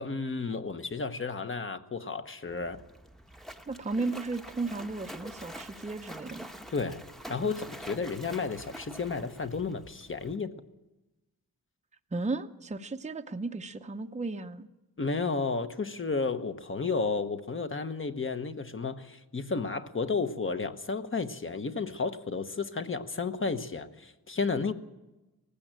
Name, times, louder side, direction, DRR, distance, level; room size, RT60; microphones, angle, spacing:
voice 1, 0.0-2.8 6.7-7.0 7.3-10.5 15.0-24.7, left 4 dB, 35° left, 9 dB, 1.1 m, -32 dB
Splash splatter, 2.5-10.4, equal, ahead, 0.9 m, -46 dB
voice 2, 3.7-6.5 12.1-14.7, right 3 dB, 20° right, 7 dB, 0.7 m, -34 dB
19.0 x 15.5 x 8.9 m, 1.0 s
wide cardioid pair, 155°, 37 cm